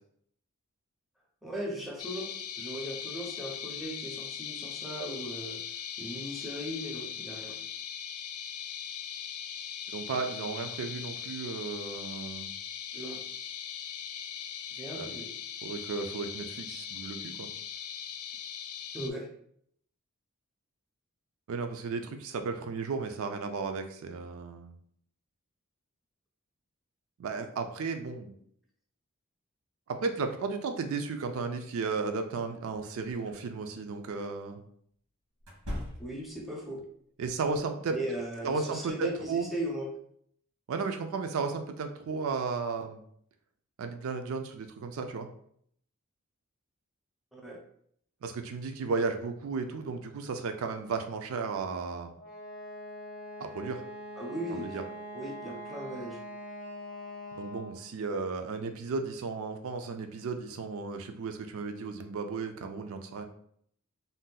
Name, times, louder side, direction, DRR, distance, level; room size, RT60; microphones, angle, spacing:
voice 1, 1.4-2.3 2.6-5.6 6.0-7.6 12.9-13.2 14.8-15.3 18.9-19.3 36.0-36.8 37.9-39.9 47.3-47.6 54.2-54.8 55.1-56.2, right 1 dB, ahead, -2 dB, 0.5 m, -38 dB
sound 1, 2.0-19.1, left 8 dB, 75° left, 0.3 m, -40 dB
voice 2, 9.9-12.5 14.9-15.1 15.6-17.5 21.5-24.7 27.2-28.3 29.9-34.6 37.2-38.0 38.4-39.5 40.7-43.0 43.8-45.3 48.2-52.2 53.4-53.8 54.5-54.8 57.4-63.3, right 4 dB, 70° right, 6 dB, 0.4 m, -34 dB
sound 2, 33.2-33.4 35.4-36.4, left 1 dB, 90° right, 1.1 m, -39 dB
Wind instrument woodwind instrument, 52.2-57.9, equal, 35° left, 0.7 m, -43 dB
2.6 x 2.1 x 3.7 m, 0.65 s
head